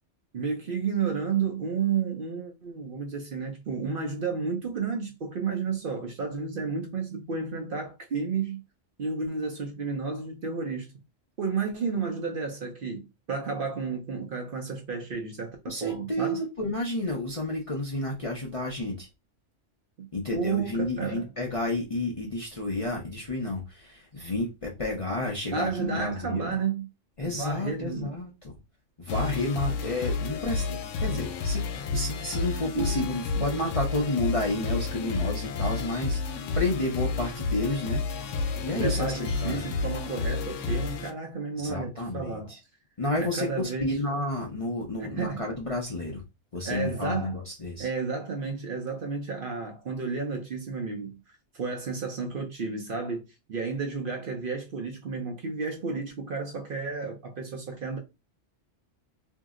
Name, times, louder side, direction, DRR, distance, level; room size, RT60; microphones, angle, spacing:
voice 1, 0.3-8.6 9.0-10.9 11.4-13.0 13.3-16.4 20.0-21.3 25.5-26.9 27.3-28.1 32.8-33.1 38.7-42.5 43.2-44.0 45.0-45.4 46.6-47.4 47.8-51.2 51.5-58.0, right 5 dB, 55° right, 0.7 m, -32 dB
voice 2, 15.7-19.1 20.1-26.6 27.2-28.5 29.0-31.6 31.9-39.7 41.6-42.6 43.0-46.2 46.5-47.9, left 2 dB, 35° left, 0.5 m, -31 dB
sound 1, 29.1-41.1, left 4 dB, 80° left, 0.9 m, -31 dB
2.7 x 2.0 x 3.5 m
omnidirectional pair, 1.3 m